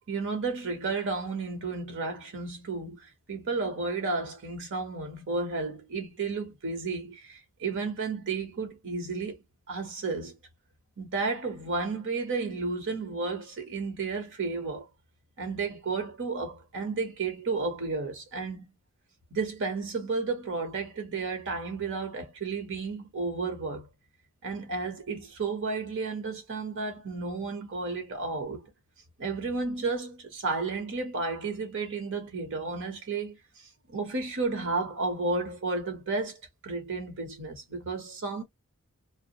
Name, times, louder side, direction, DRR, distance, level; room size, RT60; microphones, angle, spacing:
voice 1, 0.1-9.4 9.7-10.3 11.0-14.9 15.4-18.7 19.3-23.9 24.4-28.7 29.2-38.4, right 3 dB, 60° right, 0.9 m, -32 dB
2.2 x 2.0 x 2.7 m
head